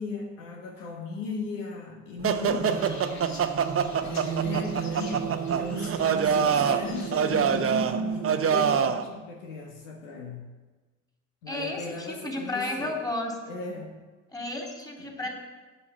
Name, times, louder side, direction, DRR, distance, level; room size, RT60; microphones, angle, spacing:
voice 1, 0.0-3.1 3.9-10.4 11.4-13.0 13.5-14.0, left 4 dB, 75° left, 1 dB, 1.5 m, -37 dB
sound 1, 2.2-9.0, right 7 dB, 35° right, 0.9 m, -25 dB
sound 2, 2.6-7.7, left 3 dB, 50° left, 2.5 m, -49 dB
voice 2, 6.4-6.7 11.5-13.3 14.3-15.3, left 2 dB, 10° left, 0 dB, 3.4 m, -33 dB
8.4 x 7.8 x 7.6 m, 1.3 s
hypercardioid pair, 50°, 37 cm